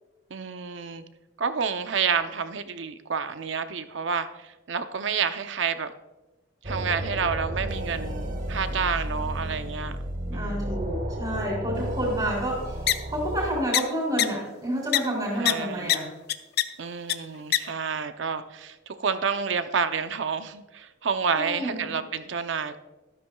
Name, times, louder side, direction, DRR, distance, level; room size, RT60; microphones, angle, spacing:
voice 1, 0.3-1.0 1.4-5.9 6.6-10.0 10.3-10.8 15.4-16.0 16.8-22.8, right 6 dB, 70° right, 10 dB, 0.6 m, -29 dB
sound 1, 6.6-13.5, right 1 dB, 40° right, 1.3 m, -32 dB
voice 2, 10.3-12.8 13.1-16.1 21.3-22.0, right 1 dB, 25° right, -4 dB, 3.2 m, -29 dB
sound 2, 12.9-13.0 13.7-13.8 14.2-14.3 14.9-15.0 15.4-15.5 15.9-16.0 16.3-16.6 17.1-17.2 17.5-17.6, left 11 dB, 55° left, 0.5 m, -20 dB
13.0 x 12.5 x 2.3 m, 1.1 s
head